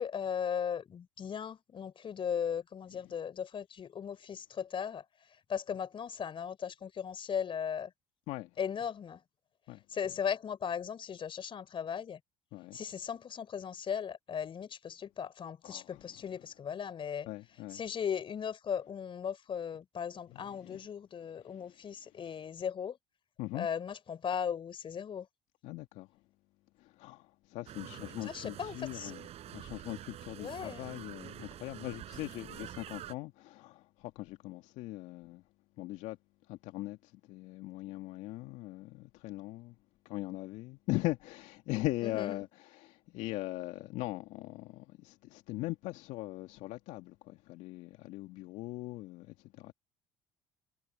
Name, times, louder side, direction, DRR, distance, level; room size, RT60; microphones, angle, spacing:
voice 1, 0.0-5.0 5.5-7.9 8.6-9.2 9.9-12.2 12.7-17.3 17.7-23.0 23.5-25.3 28.2-29.1 30.4-30.8 42.0-42.4, left 7 dB, 40° left, 4.1 m, -37 dB
voice 2, 15.6-16.0 17.3-17.8 20.3-20.8 21.5-21.7 23.4-23.7 25.6-26.1 26.8-29.3 29.5-35.4 35.8-36.2 36.5-39.7 40.0-49.7, left 19 dB, 65° left, 2.4 m, -40 dB
sound 1, 27.7-33.1, right 12 dB, 55° right, 4.4 m, -47 dB
hypercardioid pair, 65°, 13 cm